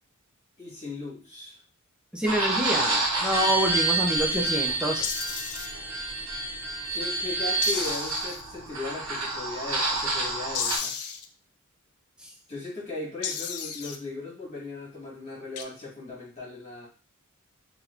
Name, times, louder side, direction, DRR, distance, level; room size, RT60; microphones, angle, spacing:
voice 1, 0.6-1.6 6.9-10.9 12.5-16.9, left 3 dB, 30° left, -6 dB, 1.8 m, -37 dB
voice 2, 2.1-5.1, right 1 dB, 5° right, 0 dB, 0.7 m, -27 dB
sound 1, 2.3-10.8, right 2 dB, 65° right, 1.1 m, -28 dB
sound 2, 5.0-5.7 7.6-8.4 10.5-11.3 13.2-14.0 15.6-15.7, left 7 dB, 90° left, 0.4 m, -33 dB
3.7 x 2.9 x 2.5 m, 0.36 s
head